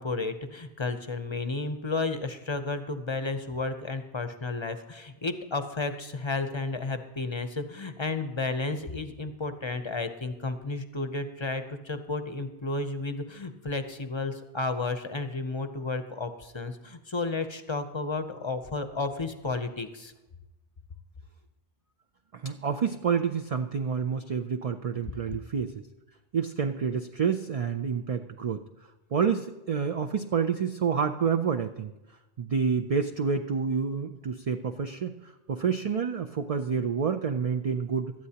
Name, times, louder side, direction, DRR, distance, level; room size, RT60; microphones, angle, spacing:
voice 1, 0.0-20.1 25.3-25.4, left 3 dB, 30° left, 9 dB, 0.7 m, -32 dB
voice 2, 22.3-25.8 26.3-28.6 29.1-31.9 32.4-38.1, right 6 dB, 50° right, 5 dB, 0.4 m, -28 dB
17.5 x 12.5 x 2.9 m, 1.0 s
omnidirectional pair, 1.1 m